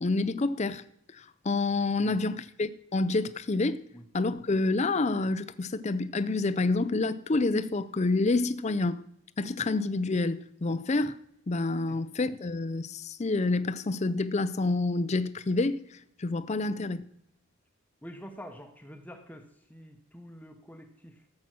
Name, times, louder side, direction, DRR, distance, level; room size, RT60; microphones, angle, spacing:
voice 1, 0.0-0.8 1.2-3.8 4.1-9.0 9.4-11.1 11.5-15.8 16.2-17.0, left 3 dB, 30° left, 0.5 m, -28 dB
voice 2, 18.0-19.4 19.7-21.1, equal, 5° left, 0.9 m, -46 dB
13.5 x 7.6 x 6.1 m
head